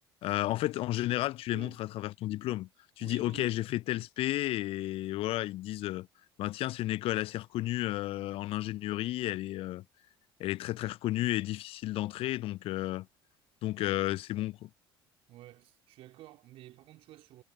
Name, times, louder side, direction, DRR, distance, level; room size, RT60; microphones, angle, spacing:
voice 1, 0.2-2.7 3.0-6.1 6.4-9.8 10.4-13.1 13.6-14.7, left 16 dB, 50° left, 1.0 m, -32 dB
voice 2, 1.5-1.8 3.0-3.5 15.3-17.4, right 15 dB, 50° right, 3.3 m, -51 dB
figure-of-eight pair, 60°, 12 cm